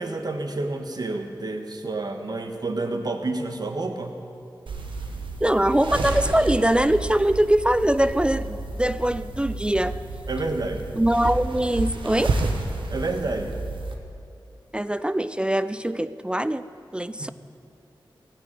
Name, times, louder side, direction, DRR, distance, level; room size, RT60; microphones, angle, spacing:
voice 1, 0.0-4.2 10.3-10.8 12.9-13.6 17.2-17.3, right 2 dB, 55° right, 5 dB, 1.3 m, -29 dB
sound 1, 4.7-13.9, right 3 dB, 85° right, 1.2 m, -31 dB
voice 2, 5.4-10.1 11.0-12.4 14.7-16.6 16.9-17.3, right 1 dB, 10° right, 13 dB, 0.4 m, -22 dB
17.0 x 6.5 x 9.0 m, 2.5 s
wide cardioid pair, 65°, 8 cm